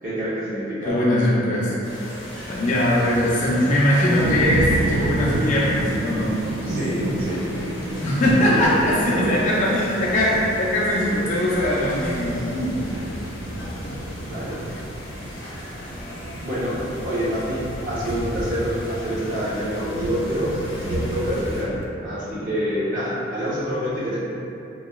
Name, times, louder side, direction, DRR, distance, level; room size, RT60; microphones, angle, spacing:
voice 1, 0.0-1.0 6.7-7.4 7.7-7.9 8.5-8.6 8.9-9.3 14.2-14.8 16.4-16.8 17.0-20.5 20.8-21.7 22.0-24.2, equal, 40° right, -9 dB, 0.7 m, -27 dB
voice 2, 0.9-1.8 2.5-6.4 8.0-12.8, left 1 dB, 35° left, -6 dB, 0.3 m, -21 dB
sound 1, 1.8-21.6, left 1 dB, 70° left, 0.6 m, -37 dB
Thunder, 2.7-21.9, right 1 dB, 70° right, 0.3 m, -31 dB
2.9 x 2.0 x 2.2 m, 2.8 s
head